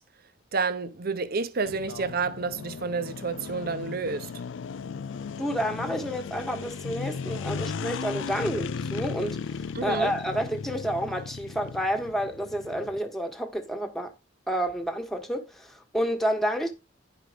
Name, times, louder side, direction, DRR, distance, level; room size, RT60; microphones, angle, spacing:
voice 1, 0.5-4.3 9.7-10.1, right 4 dB, 50° right, 0.8 m, -29 dB
sound 1, 1.6-13.0, left 5 dB, 75° left, 0.4 m, -36 dB
voice 2, 5.4-9.5 9.8-14.1 14.5-16.7, equal, ahead, 1.4 m, -29 dB
10.5 x 4.9 x 5.1 m
head